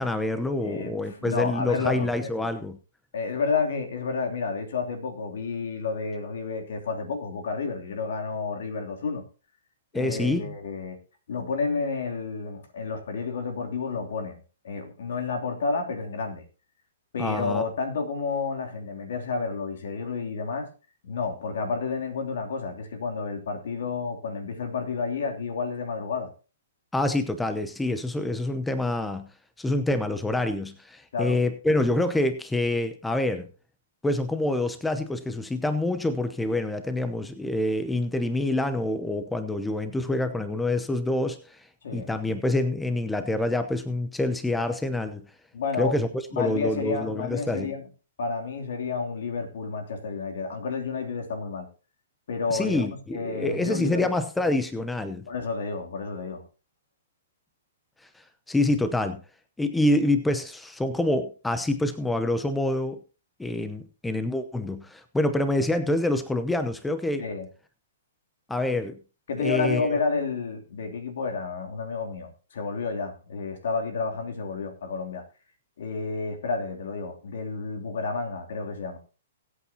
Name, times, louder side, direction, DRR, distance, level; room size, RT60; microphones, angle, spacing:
voice 1, 0.0-2.8 9.9-10.4 17.2-17.7 26.9-29.3 29.6-33.5 34.0-41.7 41.9-45.2 45.8-47.7 52.5-55.2 58.2-59.2 59.6-63.0 63.4-67.2 68.5-69.0 69.4-70.0, left 1 dB, 5° left, 0.8 m, -26 dB
voice 2, 0.6-2.3 3.1-9.2 9.9-11.0 11.3-16.4 17.1-20.7 21.0-26.3 31.1-31.4 41.8-42.1 45.5-46.0 46.3-47.9 48.2-51.7 52.3-54.1 55.3-56.4 67.2-67.5 69.3-75.2 75.8-79.0, left 4 dB, 70° left, 3.0 m, -30 dB
21.5 x 8.5 x 2.9 m
hypercardioid pair, 135°, 0 cm